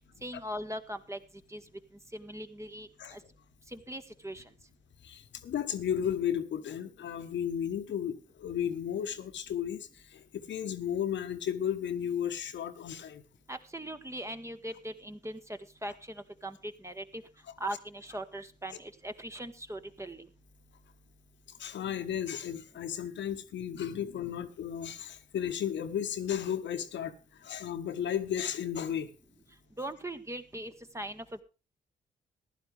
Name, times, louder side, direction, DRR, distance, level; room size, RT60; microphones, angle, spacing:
voice 1, 0.2-1.2 1.5-1.7 2.1-3.2 3.7-4.5 13.5-17.2 17.6-20.3 29.8-31.4, right 1 dB, 15° right, 8 dB, 1.3 m, -40 dB
voice 2, 5.0-13.2 21.6-27.1 27.4-29.1, left 9 dB, 60° left, 10 dB, 1.2 m, -34 dB
15.5 x 11.0 x 3.4 m, 0.31 s
hypercardioid pair, 45°, 21 cm